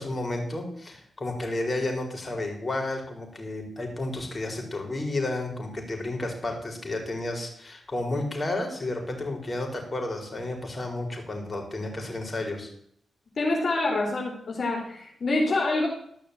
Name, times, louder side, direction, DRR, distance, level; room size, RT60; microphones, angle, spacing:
voice 1, 0.0-12.7, left 2 dB, 30° left, 2 dB, 4.7 m, -32 dB
voice 2, 13.4-15.9, left 2 dB, 60° left, -1 dB, 3.3 m, -26 dB
13.5 x 6.2 x 8.5 m, 0.67 s
cardioid pair, 60°, 0 cm